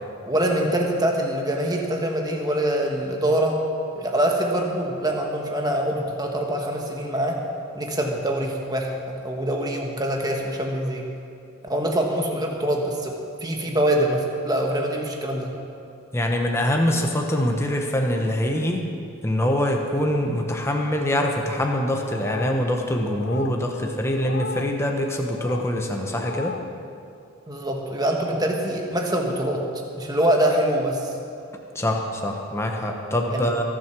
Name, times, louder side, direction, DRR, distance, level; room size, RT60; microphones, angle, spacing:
voice 1, 0.3-3.6 3.9-7.4 7.7-11.1 11.6-13.1 13.4-15.5 27.5-29.7 30.0-31.1 33.3-33.6, right 1 dB, 15° right, 1 dB, 1.4 m, -24 dB
voice 2, 16.1-18.9 19.2-26.6 31.7-33.6, left 1 dB, 10° left, 1 dB, 1.0 m, -24 dB
sound 1, 22.1-22.7 23.2-23.6 24.2-24.7 25.3-25.7 26.1-26.7, left 4 dB, 45° left, 0.5 m, -35 dB
22.0 x 7.8 x 6.1 m, 2.6 s
head